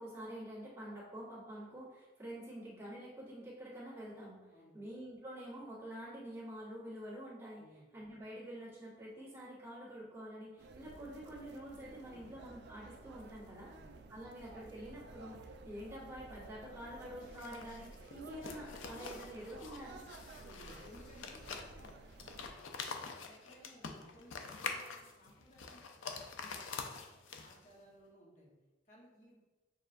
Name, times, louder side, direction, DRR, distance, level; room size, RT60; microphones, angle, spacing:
voice 1, 0.0-4.5 4.7-7.6 7.9-13.7 14.1-20.0, equal, 15° right, -9 dB, 1.5 m, -47 dB
voice 2, 4.5-4.8 7.6-7.9 12.0-12.4 13.6-13.9 20.4-21.4 22.9-26.9 27.3-28.5 28.8-29.4, equal, 40° left, -4 dB, 1.0 m, -60 dB
sound 1, 10.6-22.5, right 3 dB, 60° right, 0.3 m, -54 dB
sound 2, 17.2-27.7, left 5 dB, 90° left, 0.4 m, -46 dB
6.5 x 2.4 x 2.5 m, 1.2 s
head